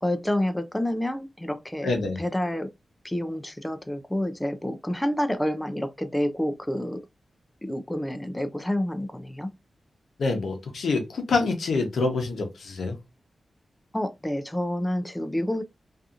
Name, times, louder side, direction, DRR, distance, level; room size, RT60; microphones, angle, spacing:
voice 1, 0.0-2.7 3.0-7.0 7.6-9.5 13.9-15.6, left 1 dB, 10° left, 0.3 m, -28 dB
voice 2, 1.8-2.2 10.2-13.0, left 3 dB, 90° left, 0.7 m, -26 dB
2.7 x 2.4 x 2.4 m
wide cardioid pair, 120°, 0 cm